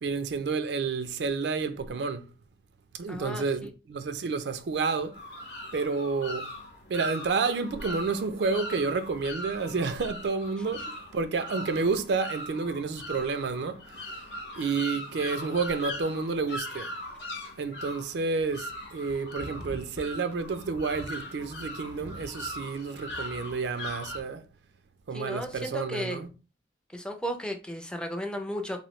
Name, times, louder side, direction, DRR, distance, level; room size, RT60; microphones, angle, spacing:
voice 1, 0.0-2.3 3.0-5.2 5.7-6.5 6.9-10.8 11.1-14.0 14.6-16.9 17.6-24.4 25.1-26.3, right 4 dB, 70° right, 0.4 m, -30 dB
voice 2, 3.1-3.7 25.1-26.2 26.9-28.8, equal, 5° left, 0.4 m, -34 dB
sound 1, 5.1-24.2, left 1 dB, 70° left, 0.7 m, -40 dB
3.0 x 2.6 x 3.0 m
head